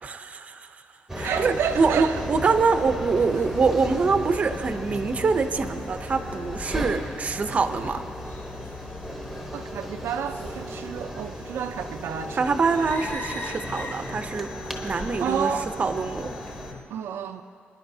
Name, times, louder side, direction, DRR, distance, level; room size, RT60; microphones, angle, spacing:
voice 1, 0.0-0.7 1.1-8.0 12.3-14.5 14.8-15.5 15.8-16.3, right 4 dB, 35° right, 8 dB, 0.6 m, -24 dB
sound 1, 1.1-16.8, left 3 dB, 50° left, 1.0 m, -40 dB
sound 2, 1.1-16.7, right 1 dB, ahead, 1.1 m, -36 dB
voice 2, 1.2-2.2 3.3-3.4 6.8-7.0 9.5-12.5 15.2-15.7 16.9-17.4, right 8 dB, 90° right, 6 dB, 0.4 m, -30 dB
25.0 x 10.5 x 2.7 m, 2.6 s
cardioid pair, 135°, 4 cm